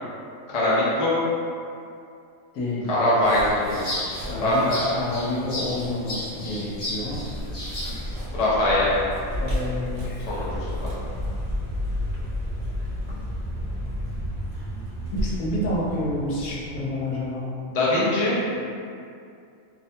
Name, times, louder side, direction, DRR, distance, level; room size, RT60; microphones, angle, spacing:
voice 1, 0.5-1.1 2.9-3.8 4.4-4.9 8.3-8.9 10.3-10.9 17.7-18.7, left 1 dB, 55° left, -7 dB, 0.4 m, -22 dB
voice 2, 2.5-2.9 4.2-4.7 4.9-7.2 9.4-10.2 15.2-17.5, left 1 dB, 85° left, -5 dB, 1.1 m, -29 dB
sound 1, 3.2-8.2, left 1 dB, 35° left, 1.1 m, -34 dB
Vehicle, 6.9-17.2, left 1 dB, 65° right, 0.4 m, -31 dB
2.6 x 2.1 x 2.7 m, 2.4 s
omnidirectional pair, 1.5 m